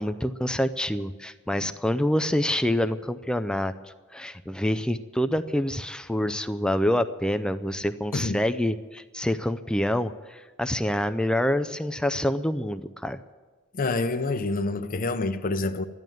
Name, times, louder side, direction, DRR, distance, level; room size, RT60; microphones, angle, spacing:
voice 1, 0.0-3.7 4.1-13.2, left 1 dB, 5° left, 0.4 m, -26 dB
voice 2, 13.7-15.8, left 3 dB, 45° left, 0.7 m, -27 dB
13.0 x 11.0 x 9.2 m
head